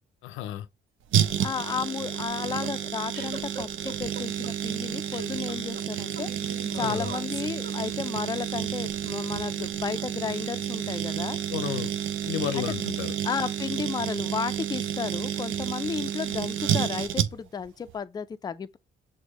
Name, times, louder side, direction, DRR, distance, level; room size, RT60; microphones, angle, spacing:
voice 1, 0.2-0.7 6.8-7.1 11.5-11.9 12.2-13.2, left 11 dB, 85° left, 0.4 m, -32 dB
sound 1, 1.1-17.6 17.9-18.0, right 10 dB, 80° right, 0.6 m, -30 dB
voice 2, 1.4-11.4 12.5-12.9 13.2-18.8, left 6 dB, 20° left, 0.3 m, -33 dB
sound 2, 1.9-8.2, right 3 dB, 60° right, 1.7 m, -41 dB
6.2 x 2.1 x 3.0 m
cardioid pair, 90°, 20 cm